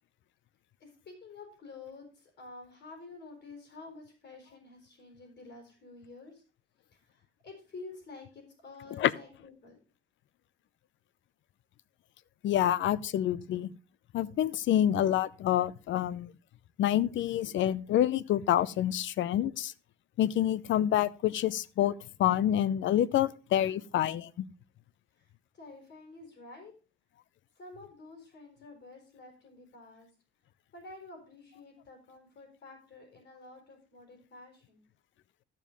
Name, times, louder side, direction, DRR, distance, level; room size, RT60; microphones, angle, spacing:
voice 1, 0.8-6.4 7.0-9.8 25.1-26.7 27.6-30.1 30.7-34.8, left 3 dB, 50° left, 4.7 m, -50 dB
voice 2, 12.4-13.7 14.1-16.3 16.8-19.7 20.2-21.9 22.2-24.3, left 11 dB, 70° left, 0.7 m, -27 dB
14.0 x 5.4 x 5.3 m
cardioid pair, 90°, 20 cm